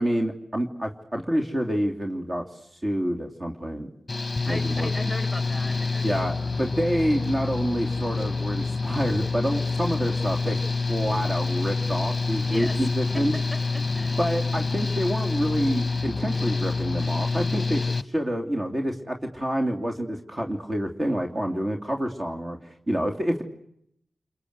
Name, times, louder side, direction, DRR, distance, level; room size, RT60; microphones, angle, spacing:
voice 1, 0.0-2.5 2.8-3.9 4.5-4.9 6.0-10.6 10.9-13.3 14.2-22.6 22.9-23.4, equal, 30° right, 2 dB, 3.0 m, -27 dB
Engine / Mechanical fan, 4.1-18.0, left 3 dB, 30° left, 1.1 m, -27 dB
voice 2, 4.4-6.2 12.5-12.9 13.1-14.5, equal, 5° right, 7 dB, 3.6 m, -37 dB
29.5 x 22.5 x 8.1 m, 0.75 s
cardioid pair, 60°, 0 cm